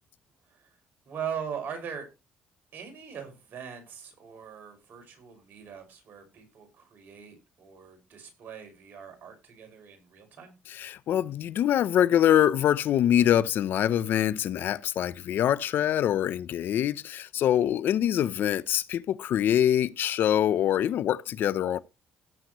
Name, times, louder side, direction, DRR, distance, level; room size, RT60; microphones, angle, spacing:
voice 1, 1.1-2.1 2.7-10.5, right 7 dB, 60° right, 5.9 m, -41 dB
voice 2, 10.7-21.8, left 11 dB, 65° left, 0.7 m, -24 dB
17.0 x 7.7 x 3.1 m
supercardioid pair, 75°, 4 cm